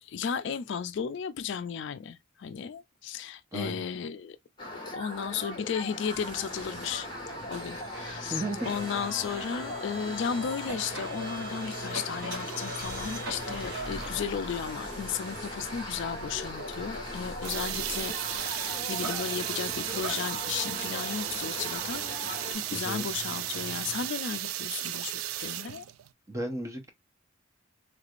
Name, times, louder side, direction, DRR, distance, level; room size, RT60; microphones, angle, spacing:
voice 1, 0.0-4.4 4.9-25.9, left 7 dB, 60° left, 0.3 m, -35 dB
voice 2, 3.5-3.8 8.3-8.7 22.7-23.1 26.3-26.9, right 1 dB, 15° right, 0.8 m, -34 dB
sound 1, 4.6-22.5, left 1 dB, 20° left, 1.4 m, -40 dB
sound 2, 6.1-24.1, right 1 dB, 60° right, 1.9 m, -41 dB
sound 3, 17.4-26.1, right 13 dB, 90° right, 0.3 m, -34 dB
3.3 x 3.2 x 2.4 m
head